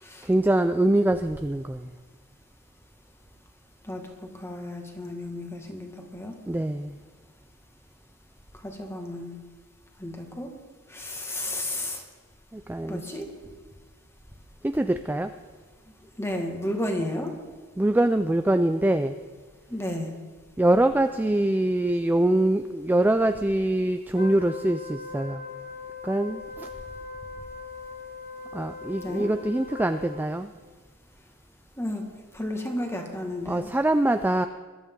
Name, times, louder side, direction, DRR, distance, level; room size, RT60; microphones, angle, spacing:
voice 1, 0.2-1.9 6.5-6.9 12.5-13.2 14.6-15.3 17.8-19.2 20.6-25.4 26.0-26.7 28.5-30.5 33.5-34.5, right 1 dB, 10° right, 9 dB, 0.3 m, -24 dB
voice 2, 4.4-6.3 8.6-9.4 10.0-10.5 10.9-12.0 12.9-13.3 16.2-17.3 19.7-20.1 29.0-29.3 31.8-32.0 32.3-33.7, left 1 dB, 10° left, 2 dB, 1.8 m, -32 dB
Wind instrument woodwind instrument, 24.1-30.4, left 4 dB, 40° left, 1.1 m, -40 dB
22.0 x 12.0 x 3.8 m, 1.4 s
head